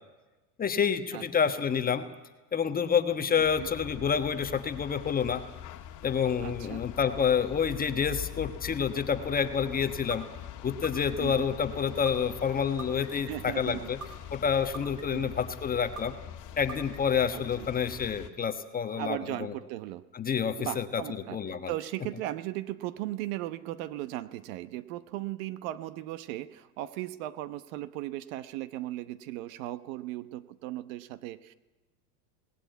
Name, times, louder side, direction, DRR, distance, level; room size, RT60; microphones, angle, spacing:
voice 1, 0.6-2.0 2.5-5.4 6.0-10.3 10.6-14.0 14.3-16.1 16.6-19.5 20.1-21.0 21.3-21.7, left 7 dB, 15° left, 8 dB, 1.2 m, -28 dB
sound 1, 3.4-18.3, left 11 dB, 35° left, 2.1 m, -43 dB
voice 2, 6.4-6.8 11.2-11.5 13.1-13.9 15.1-15.4 17.3-17.7 19.0-20.0 20.6-31.5, right 15 dB, 55° right, 14 dB, 1.1 m, -37 dB
sound 2, 10.1-10.2 10.8-11.4 12.1-12.2 12.8-13.3 14.0-14.1 14.7-15.3 16.0-16.1 16.7-17.2, right 4 dB, 35° right, 3.8 m, -41 dB
18.5 x 18.5 x 9.2 m, 1.2 s
supercardioid pair, 125°, 50 cm